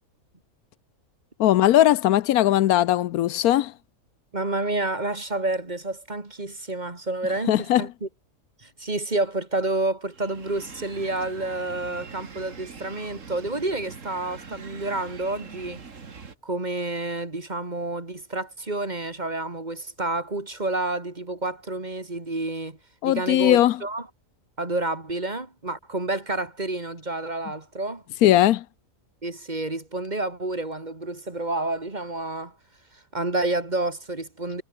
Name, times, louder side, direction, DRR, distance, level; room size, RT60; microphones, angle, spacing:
voice 1, 1.4-3.7 7.5-7.8 23.0-23.8 28.2-28.6, left 13 dB, 80° left, 1.1 m, -19 dB
voice 2, 4.3-8.1 8.6-15.8 16.4-22.8 23.0-24.1 24.6-28.0 29.2-32.6 32.9-34.6, right 2 dB, 30° right, 2.5 m, -29 dB
sound 1, 10.1-16.4, right 5 dB, 55° right, 2.4 m, -43 dB
omnidirectional pair, 1.6 m